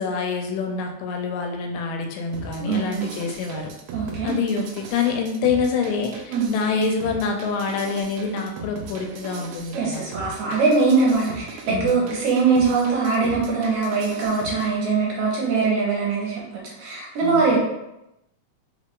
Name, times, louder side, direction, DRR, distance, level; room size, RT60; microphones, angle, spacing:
voice 1, 0.0-3.7 4.2-10.0 11.7-12.0 17.2-17.4, left 5 dB, 85° left, 3 dB, 2.3 m, -26 dB
sound 1, 2.3-14.7, right 4 dB, 85° right, 1.6 m, -38 dB
voice 2, 2.6-3.1 3.9-4.3 6.3-6.5 9.7-17.6, right 4 dB, 70° right, -4 dB, 2.1 m, -22 dB
5.0 x 2.4 x 3.6 m, 0.89 s
omnidirectional pair, 3.8 m